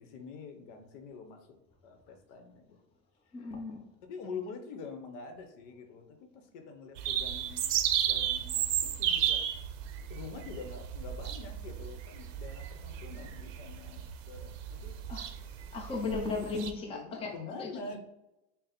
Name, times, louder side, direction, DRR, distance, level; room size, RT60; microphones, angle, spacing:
voice 1, 0.0-1.5 1.8-2.8 4.0-7.7 8.1-9.5 10.1-14.9 16.9-18.0, left 4 dB, 70° left, 5 dB, 0.8 m, -45 dB
voice 2, 3.3-3.8 15.1-15.3 15.7-17.7, left 3 dB, 15° left, 0 dB, 0.6 m, -36 dB
sound 1, 7.0-16.7, right 10 dB, 85° right, 0.6 m, -33 dB
3.9 x 2.0 x 4.1 m, 0.94 s
supercardioid pair, 130°, 37 cm